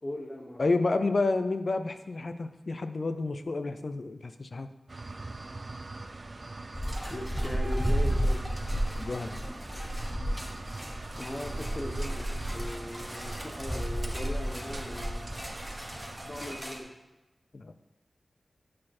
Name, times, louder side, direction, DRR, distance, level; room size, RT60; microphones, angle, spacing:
voice 1, 0.0-0.7 7.1-8.5 11.2-15.3 16.2-16.9, left 1 dB, 40° left, 0 dB, 0.8 m, -39 dB
voice 2, 0.6-4.7 8.9-9.4 17.5-17.7, left 3 dB, 60° left, 9 dB, 0.4 m, -30 dB
sound 1, 4.9-16.6, right 2 dB, 50° right, 0.4 m, -43 dB
sound 2, 6.7-16.8, equal, 5° right, 1.1 m, -33 dB
Engine starting, 7.0-14.9, equal, 25° right, 0.9 m, -52 dB
7.5 x 4.2 x 4.3 m, 1.0 s
cardioid pair, 45°, 0 cm